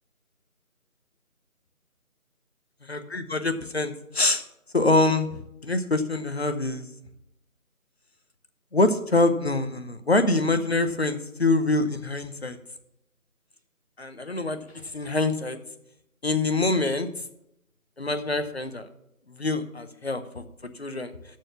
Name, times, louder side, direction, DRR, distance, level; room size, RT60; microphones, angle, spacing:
voice 1, 2.9-4.4 4.7-6.9 8.7-12.6 14.0-15.6 16.2-17.1 18.0-18.9 19.3-20.4 20.8-21.1, left 2 dB, 45° left, 9 dB, 0.9 m, -25 dB
13.5 x 4.7 x 7.2 m, 0.82 s
figure-of-eight pair, 165°, 44 cm